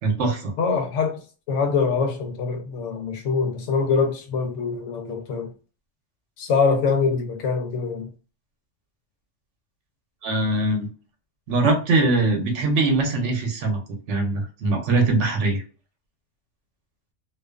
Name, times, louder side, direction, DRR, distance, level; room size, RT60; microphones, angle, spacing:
voice 1, 0.0-0.5 10.2-10.9 11.5-15.6, right 3 dB, 75° right, 1.0 m, -22 dB
voice 2, 0.6-5.5 6.4-8.1, left 5 dB, 85° left, 0.9 m, -24 dB
2.4 x 2.3 x 2.2 m
omnidirectional pair, 1.2 m